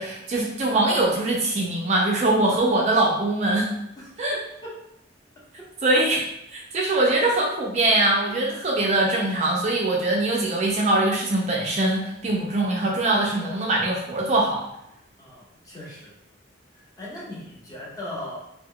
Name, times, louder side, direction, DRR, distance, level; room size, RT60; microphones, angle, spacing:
voice 1, 0.0-3.7 4.2-4.4 5.8-14.7, right 2 dB, 35° right, -2 dB, 0.4 m, -22 dB
voice 2, 15.2-16.1 17.0-18.4, left 1 dB, 20° left, -6 dB, 0.7 m, -38 dB
2.1 x 2.1 x 3.6 m, 0.80 s
head